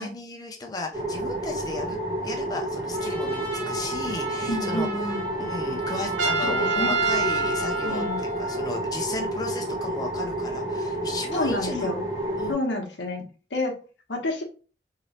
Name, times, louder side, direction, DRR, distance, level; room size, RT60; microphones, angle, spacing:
voice 1, 0.0-2.0 2.2-11.9 12.4-12.6, left 2 dB, 20° left, 1 dB, 0.5 m, -35 dB
sound 1, 0.9-12.5, right 1 dB, 20° right, 0.9 m, -30 dB
Trumpet, 2.9-8.2, right 3 dB, 70° right, 1.0 m, -36 dB
voice 2, 4.5-5.3 6.4-7.0 7.8-8.2 11.3-12.0 12.5-13.3 13.5-13.7 14.1-14.4, left 1 dB, 85° left, 2 dB, 0.9 m, -29 dB
Trumpet 2, 6.2-8.9, right 2 dB, 90° right, 0.6 m, -27 dB
3.0 x 2.9 x 2.8 m, 0.35 s
head